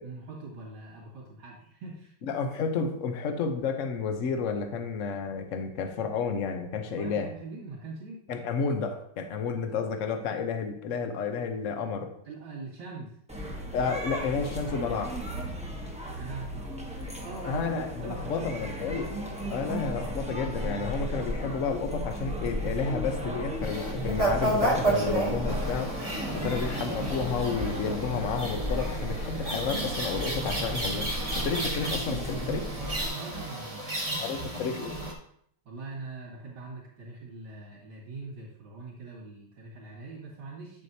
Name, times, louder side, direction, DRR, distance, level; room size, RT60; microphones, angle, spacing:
voice 1, 0.0-2.1 6.9-8.2 12.2-13.1 16.2-18.8 26.2-26.5 33.1-34.6 35.6-40.8, right 3 dB, 75° right, -8 dB, 2.9 m, -43 dB
voice 2, 2.2-7.3 8.3-12.1 13.7-15.2 17.4-19.1 19.5-25.9 26.3-31.1 31.4-32.7 34.2-35.0, left 5 dB, 60° left, 6 dB, 0.8 m, -31 dB
sound 1, 13.3-33.1, equal, 5° right, 0.5 m, -35 dB
sound 2, 23.6-35.1, right 2 dB, 25° right, 0.9 m, -32 dB
8.3 x 7.5 x 2.8 m, 0.67 s
omnidirectional pair, 2.3 m